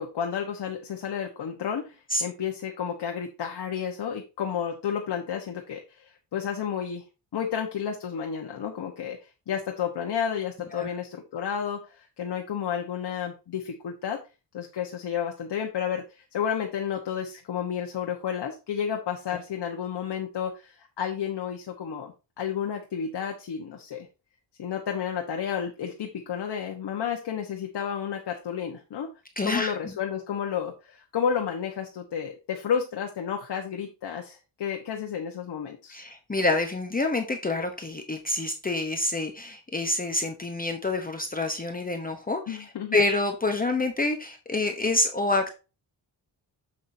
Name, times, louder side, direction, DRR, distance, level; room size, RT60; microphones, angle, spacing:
voice 1, 0.0-7.0 7.3-14.2 14.5-24.1 24.6-29.1 29.4-36.0 42.5-43.0, left 8 dB, 60° left, 2 dB, 1.3 m, -31 dB
voice 2, 29.4-29.9 35.9-42.6 42.9-45.5, left 2 dB, 20° left, 4 dB, 0.9 m, -27 dB
7.7 x 7.2 x 2.7 m, 0.29 s
wide cardioid pair, 140°, 45 cm